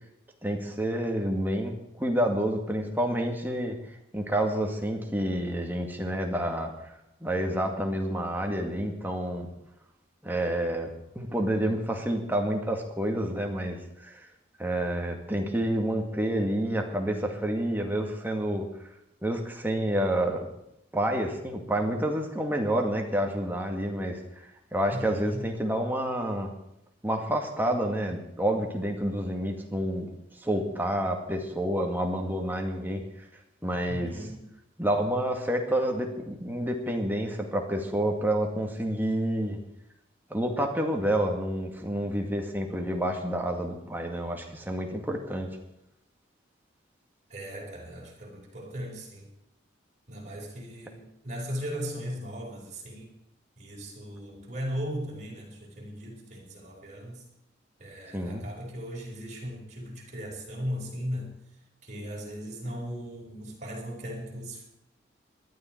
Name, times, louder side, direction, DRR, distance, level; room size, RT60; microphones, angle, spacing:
voice 1, 0.4-3.8 4.1-6.9 7.2-9.5 10.2-14.2 14.6-18.7 19.2-20.5 20.9-26.5 27.0-30.1 30.4-33.0 33.6-34.1 34.8-39.6 40.3-45.5 58.1-58.4, right 1 dB, 10° right, 2 dB, 2.0 m, -29 dB
voice 2, 24.9-25.5 33.9-34.5 47.3-49.3 50.1-53.1 53.6-57.2 57.8-61.3 61.8-64.6, equal, 40° right, -2 dB, 4.7 m, -37 dB
20.0 x 12.5 x 4.5 m, 0.83 s
head